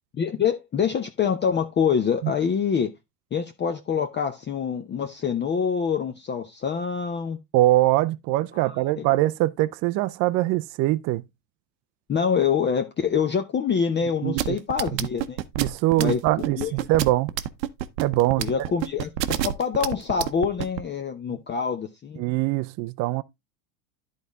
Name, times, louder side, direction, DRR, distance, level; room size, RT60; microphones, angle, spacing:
voice 1, 0.2-2.9 3.3-7.4 8.5-9.0 12.1-15.4 16.0-16.2 16.6-16.7 18.4-22.2, left 7 dB, 20° left, 0.6 m, -25 dB
voice 2, 7.5-11.2 14.2-14.4 14.9-15.1 15.6-17.3 18.0-18.5 22.2-23.2, right 16 dB, 35° right, 0.4 m, -23 dB
sound 1, 14.4-20.8, right 12 dB, 85° right, 0.8 m, -27 dB
11.0 x 4.1 x 3.5 m
hypercardioid pair, 95°, 49 cm